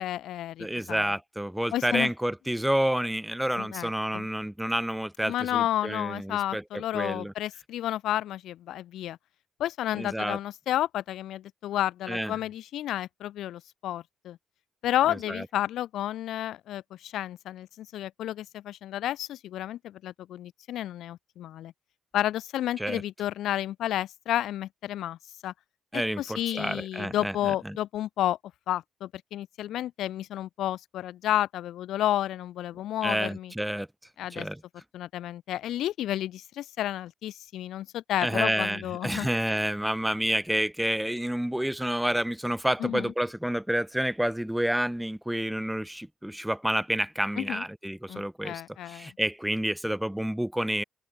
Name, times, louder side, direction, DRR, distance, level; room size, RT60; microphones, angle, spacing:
voice 1, 0.0-1.0 1.7-2.1 3.6-4.3 5.3-9.2 9.6-14.4 14.8-21.7 22.1-25.2 25.4-25.5 25.9-28.4 28.7-33.5 34.2-34.5 34.9-39.3 42.8-43.1 47.4-47.6 48.1-49.1, left 12 dB, 80° left, 3.6 m, -31 dB
voice 2, 0.6-7.3 9.9-10.4 12.1-12.3 15.1-15.4 22.8-23.0 25.9-27.8 33.0-33.9 34.3-34.6 38.2-50.8, right 1 dB, 5° right, 1.3 m, -29 dB
open air
cardioid pair, 90°, 0 cm